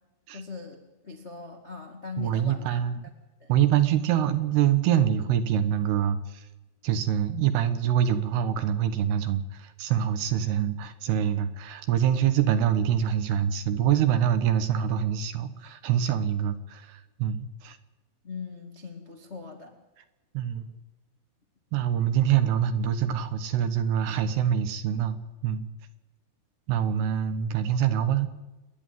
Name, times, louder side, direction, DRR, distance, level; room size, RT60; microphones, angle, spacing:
voice 1, 0.3-0.8 1.0-2.8 3.4-3.5 18.2-19.7, left 5 dB, 80° left, 2 dB, 0.6 m, -40 dB
voice 2, 2.2-3.1 3.5-6.5 6.8-17.8 20.3-20.7 21.7-25.2 25.4-25.7 26.7-28.3, right 9 dB, 75° right, 10 dB, 3.0 m, -25 dB
28.0 x 11.0 x 9.1 m, 1.1 s
omnidirectional pair, 5.1 m